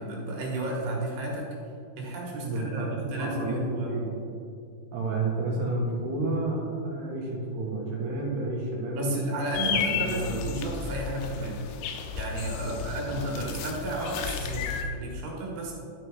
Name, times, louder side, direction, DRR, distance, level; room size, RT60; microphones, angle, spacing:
voice 1, 0.0-1.5 2.0-4.0 8.9-11.7 12.1-15.7, right 1 dB, 80° right, -2 dB, 3.6 m, -32 dB
voice 2, 2.4-4.1 4.9-9.1 9.7-10.5 12.6-13.4, right 2 dB, 60° right, -3 dB, 2.5 m, -31 dB
sound 1, 9.5-14.8, left 7 dB, 80° left, 2.7 m, -33 dB
12.0 x 5.0 x 4.8 m, 2.4 s
omnidirectional pair, 4.8 m